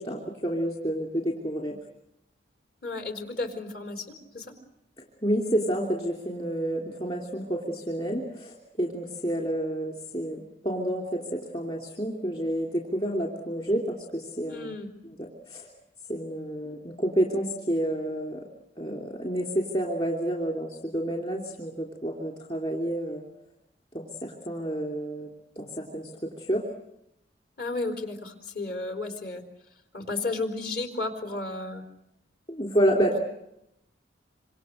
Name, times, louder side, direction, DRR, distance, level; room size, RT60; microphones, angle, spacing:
voice 1, 0.0-1.8 5.2-14.7 15.2-15.7 16.1-18.4 18.8-23.2 23.9-25.3 25.6-26.6 32.5-33.2, right 1 dB, 30° left, 0 dB, 2.9 m, -29 dB
voice 2, 2.8-4.6 14.5-14.9 27.6-29.4 29.9-31.8, left 2 dB, 55° left, 5 dB, 4.2 m, -33 dB
27.5 x 26.0 x 6.6 m, 0.82 s
head